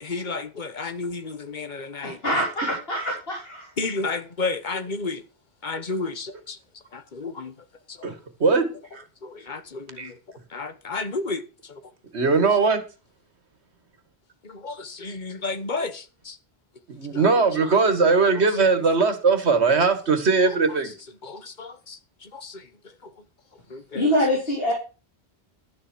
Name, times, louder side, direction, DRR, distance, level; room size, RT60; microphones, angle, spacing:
voice 1, 0.0-2.2 3.8-5.2 5.6-6.6 6.9-7.5 9.2-10.1 10.5-11.4 11.7-11.8 14.4-16.4 21.3-22.6 23.7-24.0, left 3 dB, 45° left, 1.3 m, -32 dB
voice 2, 2.0-3.7 23.9-24.7, equal, 65° left, 3.2 m, -24 dB
voice 3, 8.0-9.0 10.0-10.1 12.1-12.8 16.9-20.9, right 4 dB, 90° right, 2.0 m, -20 dB
12.0 x 7.3 x 6.2 m
omnidirectional pair, 1.1 m